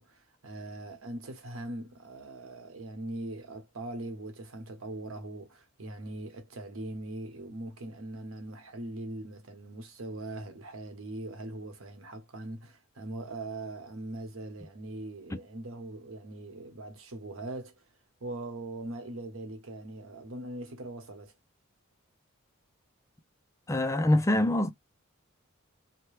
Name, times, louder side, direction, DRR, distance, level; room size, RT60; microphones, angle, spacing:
voice 1, 0.0-17.7 18.2-21.3, right 2 dB, 85° right, 1.0 m, -41 dB
voice 2, 23.7-24.7, left 1 dB, 15° left, 0.4 m, -25 dB
2.8 x 2.2 x 3.1 m
head